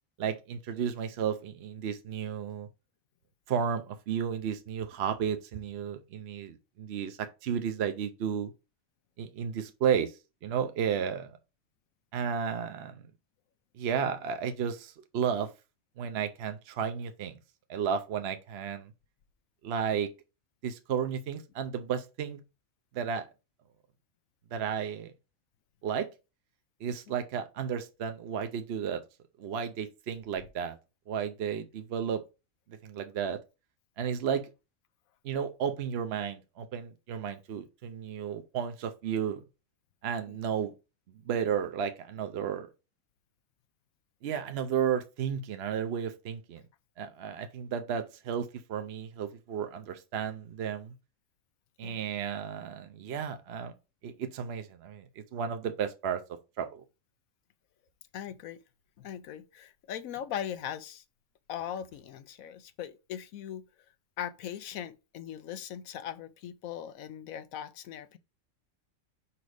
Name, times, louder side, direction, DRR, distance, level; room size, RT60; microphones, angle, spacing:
voice 1, 0.2-2.7 3.5-8.5 9.2-11.4 12.1-13.1 13.8-15.5 16.0-17.4 17.7-18.9 19.6-20.1 20.6-22.4 22.9-23.3 24.5-25.1 25.8-26.1 26.8-29.0 29.4-30.8 31.1-32.2 32.8-33.4 34.0-34.5 35.2-39.4 40.0-40.7 41.2-42.7 44.2-46.6 47.0-50.9 51.8-53.7 54.0-56.8, right 7 dB, 60° right, 0.8 m, -33 dB
voice 2, 58.1-58.6 59.0-61.0 61.5-63.6 64.2-68.2, left 9 dB, 90° left, 1.1 m, -39 dB
5.1 x 4.2 x 4.7 m
omnidirectional pair, 1.4 m